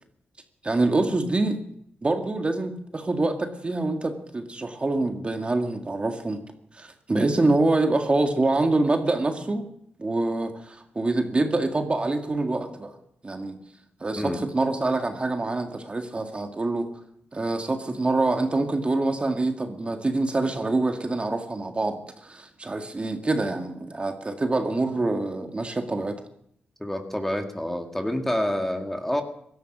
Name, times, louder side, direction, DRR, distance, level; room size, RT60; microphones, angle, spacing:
voice 1, 0.6-1.6 2.0-6.4 6.7-9.7 10.0-13.0 13.2-13.6 14.0-16.9 17.3-26.2, right 2 dB, 30° right, 5 dB, 2.0 m, -25 dB
voice 2, 26.8-29.2, left 1 dB, 5° left, 5 dB, 2.0 m, -28 dB
17.0 x 12.5 x 6.2 m, 0.70 s
cardioid pair, 65°, 4 cm